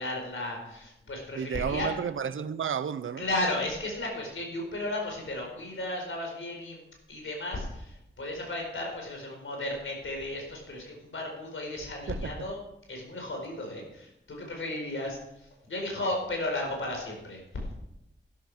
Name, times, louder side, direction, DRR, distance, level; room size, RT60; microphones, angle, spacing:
voice 1, 0.0-1.9 3.2-12.6 12.9-15.2 15.6-17.4, left 1 dB, 85° left, 4.6 m, -34 dB
voice 2, 1.3-3.3 12.1-12.5, right 7 dB, 85° right, 0.7 m, -32 dB
12.5 x 11.0 x 4.9 m
wide cardioid pair, 70°, 20 cm